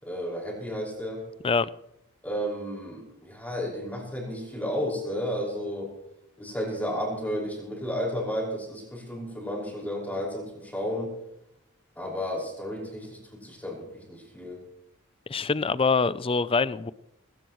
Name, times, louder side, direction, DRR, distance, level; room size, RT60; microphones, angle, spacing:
voice 1, 0.0-1.2 2.2-5.9 6.4-11.1 12.0-14.6, equal, 5° left, 5.4 m, -32 dB
voice 2, 15.3-16.9, left 4 dB, 25° left, 0.4 m, -24 dB
19.5 x 18.0 x 3.1 m
head